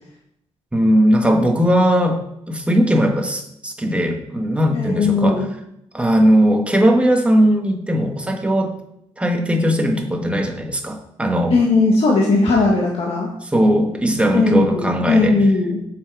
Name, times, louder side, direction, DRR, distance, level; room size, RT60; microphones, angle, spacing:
voice 1, 0.7-2.2 2.5-5.4 5.9-8.7 9.2-11.5 13.4-15.3, equal, 10° right, 3 dB, 1.4 m, -18 dB
voice 2, 4.7-5.5 11.5-13.3 14.3-15.8, left 3 dB, 55° left, -2 dB, 1.6 m, -17 dB
7.2 x 6.8 x 4.8 m, 0.78 s
cardioid pair, 110°, 12 cm